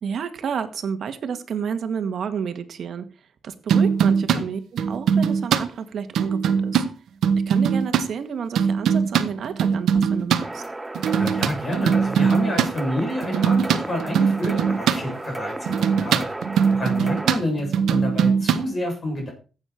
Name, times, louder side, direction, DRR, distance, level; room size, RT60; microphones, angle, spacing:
voice 1, 0.0-3.1 3.4-6.8 7.5-10.6, right 7 dB, 60° right, 9 dB, 1.8 m, -30 dB
sound 1, 3.7-4.4 4.8-5.6 6.1-6.9 7.2-8.1 8.6-10.4 10.9-12.7 13.2-15.0 15.7-18.6, right 7 dB, 85° right, 1.3 m, -21 dB
sound 2, 10.4-17.3, right 2 dB, 15° right, 0.7 m, -34 dB
voice 2, 11.2-16.2 16.7-19.3, left 1 dB, 30° left, 1 dB, 7.7 m, -28 dB
14.5 x 8.7 x 4.5 m, 0.34 s
cardioid pair, 140°, 0 cm